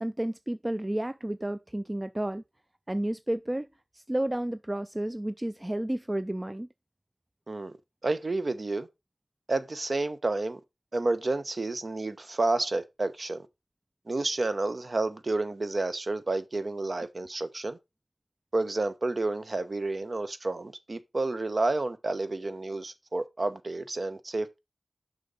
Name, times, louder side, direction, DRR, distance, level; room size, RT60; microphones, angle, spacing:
voice 1, 0.0-2.4 2.9-3.7 3.9-6.7, right 1 dB, 20° right, 0.3 m, -31 dB
voice 2, 8.0-8.9 9.5-10.6 10.9-13.4 14.1-17.8 18.5-24.6, right 2 dB, 55° right, 0.8 m, -30 dB
6.5 x 5.2 x 3.9 m
wide cardioid pair, 60°, 0 cm